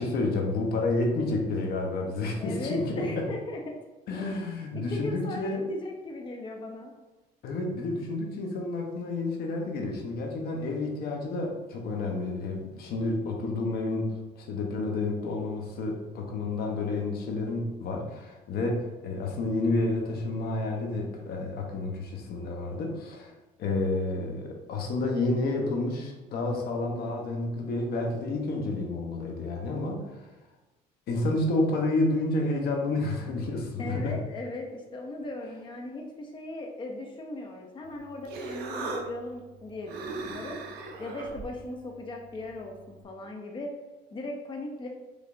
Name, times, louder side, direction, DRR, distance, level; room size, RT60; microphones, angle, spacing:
voice 1, 0.0-3.3 4.1-5.6 7.4-23.3 23.6-30.1 31.1-34.2, left 2 dB, 70° left, 1 dB, 0.9 m, -30 dB
voice 2, 2.4-3.8 4.1-4.4 4.7-6.9 33.8-40.6 41.0-43.7 44.1-44.9, left 2 dB, 30° left, 1 dB, 0.6 m, -38 dB
Human voice, 37.8-43.0, right 3 dB, 75° right, 0.6 m, -40 dB
5.0 x 3.2 x 2.6 m, 1.1 s
cardioid pair, 110°, 17 cm